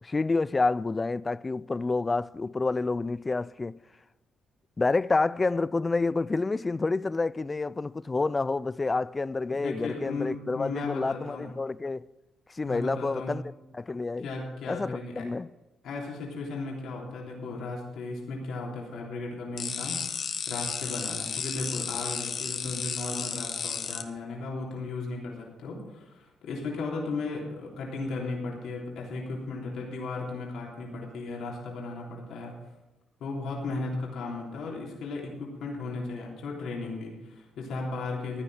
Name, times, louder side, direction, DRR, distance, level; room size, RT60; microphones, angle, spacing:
voice 1, 0.0-3.8 4.8-12.0 12.5-13.4 13.7-14.3 14.7-15.5, left 3 dB, 25° left, 0.3 m, -28 dB
voice 2, 9.5-11.5 12.6-13.3 14.2-15.3 15.8-32.5 33.2-38.4, left 3 dB, 75° left, 3.4 m, -36 dB
sound 1, 19.6-24.0, left 7 dB, 55° left, 1.2 m, -33 dB
15.5 x 10.0 x 5.0 m
cardioid pair, 90°, 0 cm